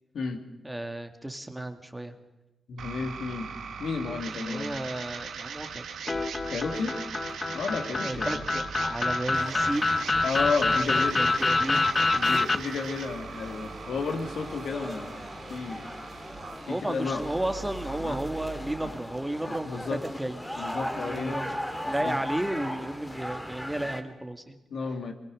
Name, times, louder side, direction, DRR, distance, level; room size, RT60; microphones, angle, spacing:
voice 1, 0.6-2.1 4.4-5.8 8.0-9.9 10.9-11.9 12.1-12.3 16.7-20.4 20.9-21.5 21.9-24.6, right 1 dB, 10° right, 7 dB, 2.0 m, -33 dB
voice 2, 2.7-3.5 3.8-4.7 6.5-6.9 7.5-8.4 10.2-11.2 11.4-11.5 12.1-15.9 16.7-17.3 17.9-18.2 18.8-18.9 19.5-20.0 20.6-21.5 22.0-22.2 24.7-25.1, left 4 dB, 75° left, 5 dB, 2.4 m, -32 dB
sound 1, 2.8-18.8, right 6 dB, 90° right, 1.9 m, -40 dB
sound 2, 6.1-12.6, left 3 dB, 35° left, 0.9 m, -26 dB
sound 3, 9.3-24.0, equal, 5° left, 2.2 m, -39 dB
23.5 x 21.0 x 6.5 m, 1.0 s
cardioid pair, 80°, 0 cm